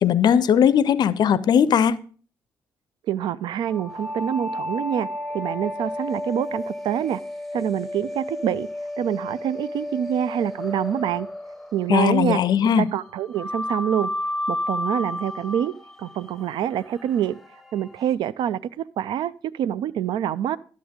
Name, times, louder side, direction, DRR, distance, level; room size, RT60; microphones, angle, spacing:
voice 1, 0.0-2.0 11.9-12.9, left 8 dB, 50° left, 18 dB, 0.5 m, -18 dB
voice 2, 3.1-7.2 7.5-8.7 9.0-11.3 11.7-12.4 12.8-14.1 14.5-15.7 16.0-17.4 17.7-20.6, right 10 dB, 55° right, 18 dB, 0.4 m, -26 dB
sound 1, 3.7-12.5 13.4-18.1, left 1 dB, ahead, 1.0 m, -32 dB
11.0 x 7.3 x 3.6 m, 0.41 s
figure-of-eight pair, 40°, 9 cm